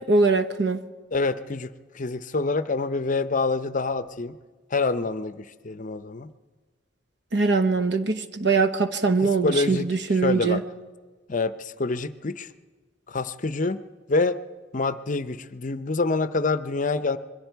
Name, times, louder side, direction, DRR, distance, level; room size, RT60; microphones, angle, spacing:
voice 1, 0.1-0.8 7.3-10.6, right 3 dB, 60° right, 9 dB, 1.1 m, -22 dB
voice 2, 1.1-4.4 4.7-6.3 9.2-9.9 10.2-10.6 11.3-12.5 13.1-13.8 14.1-14.4 14.7-17.2, left 3 dB, 40° left, 13 dB, 0.6 m, -26 dB
26.5 x 22.0 x 4.6 m, 1.4 s
head